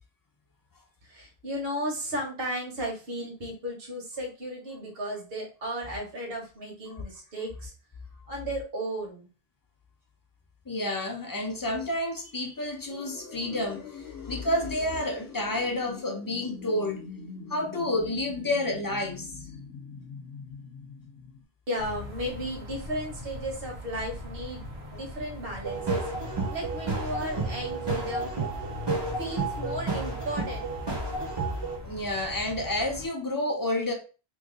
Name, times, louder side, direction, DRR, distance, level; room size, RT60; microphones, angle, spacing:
voice 1, 1.1-7.7 8.3-9.3 21.7-24.6 24.9-26.0 26.5-28.3 29.2-30.6, equal, 65° right, 1.4 m, -34 dB
voice 2, 10.7-17.0 17.5-19.3 31.8-33.9, left 1 dB, 25° left, 0.7 m, -30 dB
sound 1, 12.9-21.4, left 5 dB, 85° left, 0.9 m, -43 dB
sound 2, 21.8-33.1, left 1 dB, 90° right, 1.2 m, -41 dB
sound 3, 25.6-31.8, right 3 dB, 25° right, 0.8 m, -31 dB
3.0 x 2.6 x 3.7 m
omnidirectional pair, 1.0 m